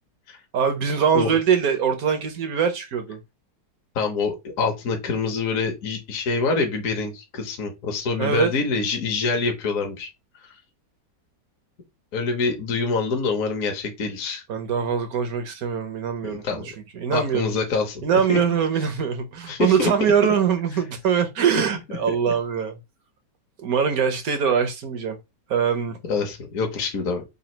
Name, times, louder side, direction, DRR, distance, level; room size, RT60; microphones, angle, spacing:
voice 1, 0.5-3.2 8.2-8.5 14.5-16.6 16.9-17.5 18.0-22.8 23.6-25.2 25.5-26.0, right 7 dB, 65° right, 1.0 m, -23 dB
voice 2, 3.9-10.1 12.1-14.4 16.2-16.7 17.1-18.0 18.3-18.4 19.5-19.9 26.1-27.2, left 4 dB, 55° left, 1.1 m, -25 dB
3.9 x 2.3 x 4.3 m
omnidirectional pair, 2.0 m